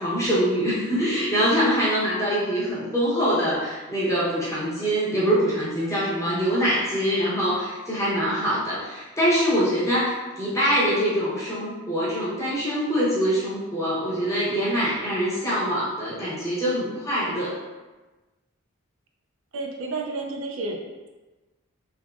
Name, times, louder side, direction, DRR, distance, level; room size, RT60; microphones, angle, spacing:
voice 1, 0.0-17.6, equal, 15° left, -8 dB, 0.9 m, -24 dB
voice 2, 19.5-21.1, right 3 dB, 70° right, 2 dB, 0.4 m, -31 dB
3.4 x 2.9 x 2.4 m, 1.2 s
head